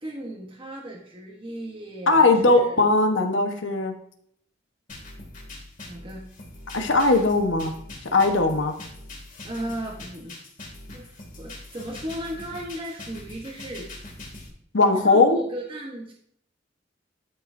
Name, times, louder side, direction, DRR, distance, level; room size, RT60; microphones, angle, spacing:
voice 1, 0.0-2.8 5.8-6.2 9.4-10.3 10.9-13.9 15.0-16.1, right 1 dB, 25° right, -2 dB, 1.2 m, -36 dB
voice 2, 2.1-3.9 6.7-7.7 8.1-8.7 14.7-15.4, left 3 dB, 85° left, 5 dB, 1.2 m, -19 dB
sound 1, 4.9-14.5, left 2 dB, 45° left, 2.5 m, -42 dB
13.0 x 5.6 x 2.7 m, 0.67 s
head